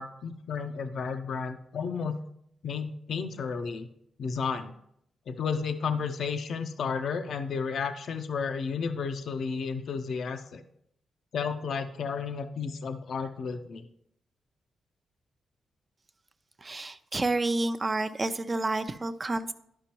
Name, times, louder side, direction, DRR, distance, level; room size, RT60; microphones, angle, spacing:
voice 1, 0.0-2.2 2.6-3.9 4.2-4.7 5.3-10.6 11.3-13.9, left 5 dB, 70° left, 8 dB, 0.5 m, -32 dB
voice 2, 16.6-19.5, right 2 dB, 35° right, 10 dB, 0.5 m, -29 dB
11.5 x 5.2 x 2.9 m, 0.74 s
supercardioid pair, 50°, 0 cm